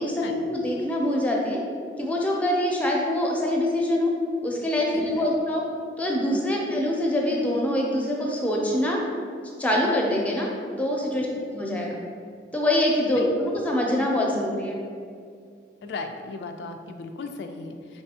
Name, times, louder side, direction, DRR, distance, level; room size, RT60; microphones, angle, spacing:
voice 1, 0.0-1.6 2.0-4.1 4.4-5.6 6.0-9.0 9.6-10.5 10.8-11.9 12.5-14.8, left 1 dB, 10° left, -1 dB, 0.5 m, -24 dB
voice 2, 4.9-5.3 6.6-6.7 11.2-11.5 13.2-13.3 15.8-18.0, left 4 dB, 70° left, 5 dB, 0.3 m, -36 dB
4.9 x 3.3 x 2.8 m, 2.3 s
head